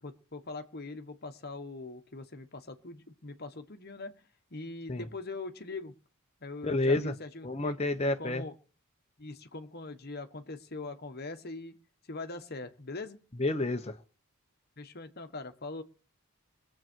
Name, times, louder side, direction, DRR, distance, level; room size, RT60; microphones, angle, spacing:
voice 1, 0.0-4.1 4.5-5.9 6.4-7.7 8.0-8.5 9.2-11.8 12.1-13.2 14.8-15.8, left 3 dB, 45° left, 1.3 m, -42 dB
voice 2, 6.6-7.1 7.4-8.4 13.4-14.0, left 2 dB, 30° left, 1.0 m, -29 dB
22.5 x 7.7 x 4.6 m
head